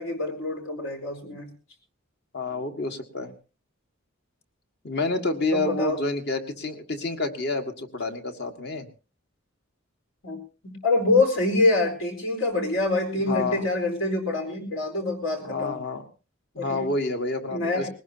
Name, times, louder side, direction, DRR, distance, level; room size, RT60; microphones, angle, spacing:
voice 1, 0.0-1.5 5.5-6.0 10.2-15.8 16.6-16.8 17.5-17.9, left 2 dB, 85° left, 3 dB, 4.4 m, -25 dB
voice 2, 2.3-3.3 4.8-8.9 13.3-13.7 15.4-16.1 16.6-17.9, left 3 dB, 55° left, 6 dB, 1.7 m, -28 dB
20.5 x 18.5 x 2.8 m, 0.32 s
head